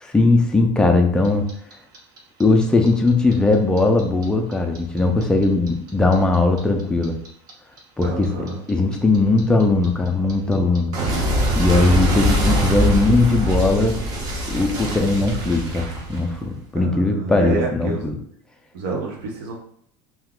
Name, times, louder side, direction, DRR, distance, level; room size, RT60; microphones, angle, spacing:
voice 1, 0.0-1.5 2.4-7.2 8.0-8.3 8.7-10.9 11.6-14.0 14.5-18.1, left 3 dB, 5° left, 3 dB, 0.3 m, -19 dB
Clock, 1.2-4.2 4.5-7.5 7.8-16.6, right 1 dB, 35° right, 0.6 m, -23 dB
voice 2, 8.0-8.6 16.7-18.1 18.7-19.6, right 3 dB, 85° right, 0 dB, 0.9 m, -28 dB
2.7 x 2.3 x 3.6 m, 0.65 s
cardioid pair, 165°, 11 cm